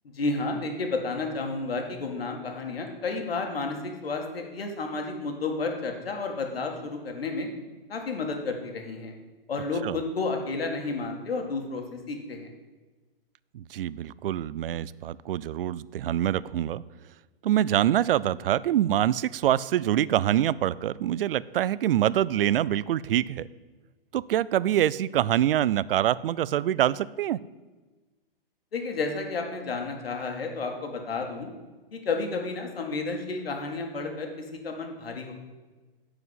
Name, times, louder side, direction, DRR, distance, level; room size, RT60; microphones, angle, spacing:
voice 1, 0.1-7.5 7.9-9.1 9.5-12.5 28.7-31.5 31.9-35.3, left 3 dB, 85° left, 3 dB, 2.0 m, -31 dB
voice 2, 13.5-16.8 17.4-23.5 24.1-27.4, right 12 dB, 70° right, 20 dB, 0.4 m, -25 dB
11.0 x 4.9 x 8.1 m, 1.3 s
hypercardioid pair, 140°, 29 cm